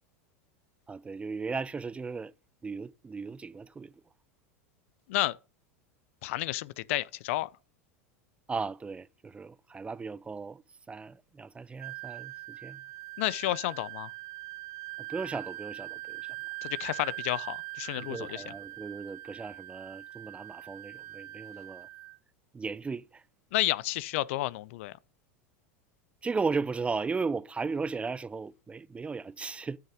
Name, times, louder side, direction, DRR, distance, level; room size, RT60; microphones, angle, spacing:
voice 1, 0.9-2.3 2.6-3.9 8.5-10.6 10.9-12.8 15.1-16.2 18.0-21.9 22.5-23.2 26.2-29.8, right 4 dB, 15° right, 0.4 m, -36 dB
voice 2, 6.2-7.5 13.2-14.1 16.6-18.4 23.5-24.9, left 17 dB, 70° left, 0.5 m, -31 dB
Wind instrument woodwind instrument, 11.8-22.2, right 19 dB, 55° right, 0.7 m, -42 dB
9.2 x 5.7 x 4.9 m
hypercardioid pair, 100°, 7 cm